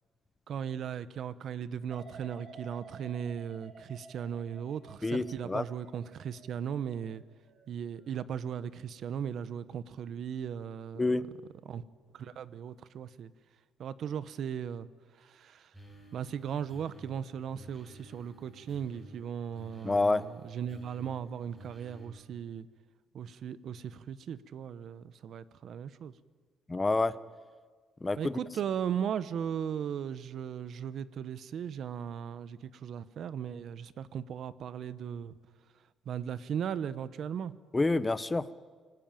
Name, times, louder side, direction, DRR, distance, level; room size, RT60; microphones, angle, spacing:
voice 1, 0.5-7.2 7.7-11.0 11.6-11.8 12.1-13.3 13.8-14.9 15.2-15.7 16.1-22.7 23.1-26.1 28.2-35.3 36.1-37.5, right 8 dB, 55° right, 0.9 m, -37 dB
sound 1, 1.9-8.8 9.2-9.7, right 3 dB, 35° right, 4.4 m, -53 dB
voice 2, 5.0-5.6 11.0-11.3 19.8-20.2 26.7-27.1 28.0-28.3 37.7-38.5, left 3 dB, 15° left, 0.8 m, -28 dB
sound 2, 15.7-22.1, right 1 dB, 5° right, 5.8 m, -53 dB
25.5 x 18.5 x 9.1 m
cardioid pair, 140°, 0 cm